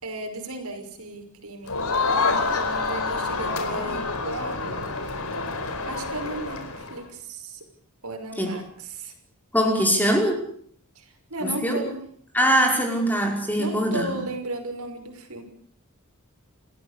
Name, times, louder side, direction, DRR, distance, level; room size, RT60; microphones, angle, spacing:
voice 1, 0.0-1.8 2.5-4.9 5.9-7.7 8.0-9.1 10.9-12.0 12.9-13.0 13.6-15.4, right 2 dB, 80° right, 4 dB, 6.1 m, -35 dB
Crowd, 1.7-7.0, left 3 dB, 75° left, 4.5 m, -27 dB
voice 2, 9.5-10.4 11.4-11.8 12.3-14.2, equal, 10° left, 2 dB, 5.6 m, -22 dB
29.5 x 16.0 x 8.5 m, 0.62 s
head